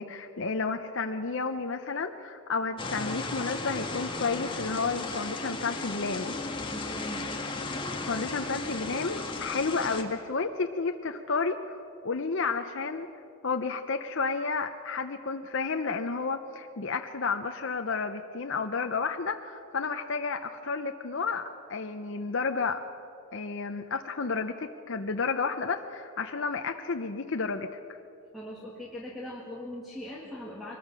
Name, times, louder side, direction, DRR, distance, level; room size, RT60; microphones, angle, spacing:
voice 1, 0.0-6.4 8.1-13.1 13.4-22.8 23.3-28.0, left 4 dB, 55° left, 6 dB, 0.7 m, -31 dB
sound 1, 2.8-10.0, left 3 dB, 20° left, 1.5 m, -35 dB
voice 2, 6.7-7.3 28.3-30.8, left 1 dB, ahead, -4 dB, 2.0 m, -41 dB
23.0 x 20.0 x 6.2 m, 2.7 s
head